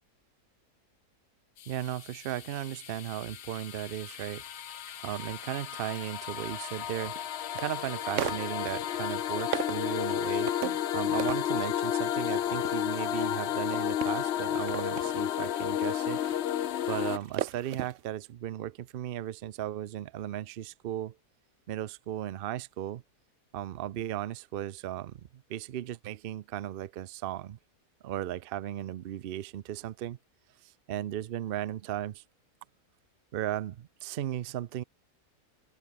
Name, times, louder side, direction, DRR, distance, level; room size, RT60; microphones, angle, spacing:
sound 1, 1.6-17.2, left 11 dB, 60° left, 0.7 m, -32 dB
voice 1, 1.7-4.4 5.0-7.2 7.5-10.5 10.9-16.2 16.9-21.2 21.7-23.0 23.5-27.6 28.0-30.2 30.6-32.2 33.3-34.8, right 12 dB, 85° right, 0.5 m, -36 dB
sound 2, 4.1-17.9, right 2 dB, 35° right, 3.7 m, -59 dB
sound 3, 5.3-5.4 6.7-7.7 8.2-9.1 9.5-9.9 10.5-10.9 11.2-11.7 12.2-18.0 18.3-18.4, right 11 dB, 60° right, 1.0 m, -38 dB
omnidirectional pair, 1.7 m